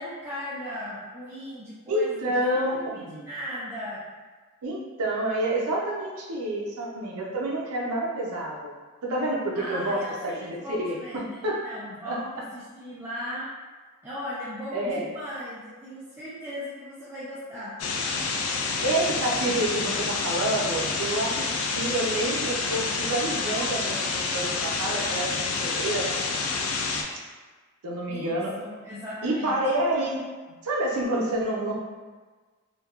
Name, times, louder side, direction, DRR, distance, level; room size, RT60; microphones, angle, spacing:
voice 1, 0.0-4.0 9.5-13.5 14.0-17.8 28.1-29.6, equal, 10° right, -11 dB, 0.4 m, -37 dB
voice 2, 1.9-2.7 3.1-3.3 4.6-8.7 9.0-11.6 12.1-12.2 12.7-12.9 14.7-15.0 18.8-26.2 27.8-28.5 29.2-31.7, right 1 dB, 85° right, -2 dB, 0.5 m, -28 dB
sound 1, 17.8-27.0, left 4 dB, 80° left, 0.3 m, -28 dB
2.7 x 2.2 x 2.3 m, 1.4 s
head